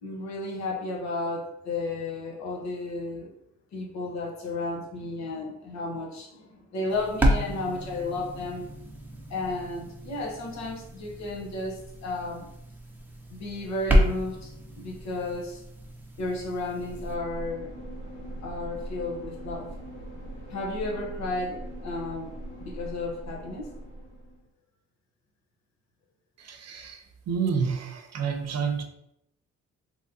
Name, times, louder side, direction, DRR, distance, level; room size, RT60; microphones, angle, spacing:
voice 1, 0.0-3.3 3.7-8.7 9.3-12.5 13.3-15.6 16.2-17.7 18.4-19.7 20.5-22.3 22.6-23.7, left 2 dB, 65° left, -1 dB, 1.0 m, -33 dB
sound 1, 6.9-17.1, equal, 5° right, 0.7 m, -30 dB
sound 2, 16.6-24.4, right 1 dB, 85° left, 1.4 m, -41 dB
voice 2, 26.4-28.8, right 6 dB, 55° right, 5 dB, 0.8 m, -29 dB
3.9 x 2.9 x 2.7 m, 0.80 s
cardioid pair, 90°, 30 cm